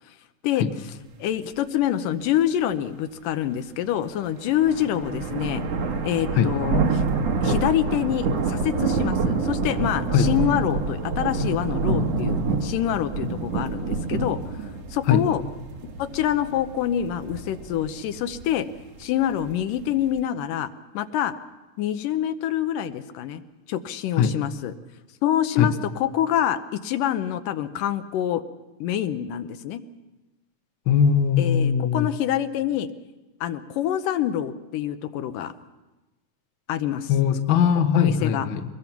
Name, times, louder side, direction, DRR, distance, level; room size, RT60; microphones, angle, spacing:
voice 1, 1.2-5.6 6.0-7.0 7.4-14.4 14.9-15.4 16.0-18.7 19.0-20.7 20.9-21.3 21.8-23.4 23.7-24.7 25.2-28.4 28.8-29.8 31.4-32.9 33.4-35.5 36.7-37.1 37.9-38.5, left 11 dB, 80° left, 10 dB, 2.5 m, -26 dB
sound 1, 4.3-20.2, right 4 dB, 55° right, 2.4 m, -27 dB
voice 2, 30.9-32.1 37.1-38.6, left 7 dB, 60° left, 7 dB, 1.3 m, -20 dB
24.5 x 21.5 x 5.9 m, 1.1 s
omnidirectional pair, 3.8 m